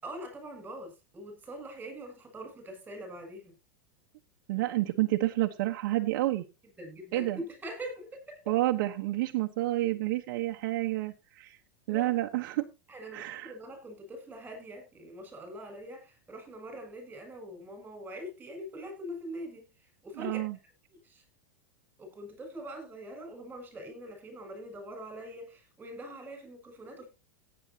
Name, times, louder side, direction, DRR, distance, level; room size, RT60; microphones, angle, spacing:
voice 1, 0.0-3.6 6.8-8.6 11.9-12.1 12.9-19.7 20.0-20.4 20.9-21.2 22.0-27.1, equal, 15° right, 7.3 m, -43 dB
voice 2, 4.5-6.4 7.1-7.4 8.5-11.6 11.9-12.7 13.1-13.5 20.2-20.6, right 17 dB, 60° right, 1.2 m, -29 dB
17.0 x 9.0 x 2.9 m
supercardioid pair, 140°, 11 cm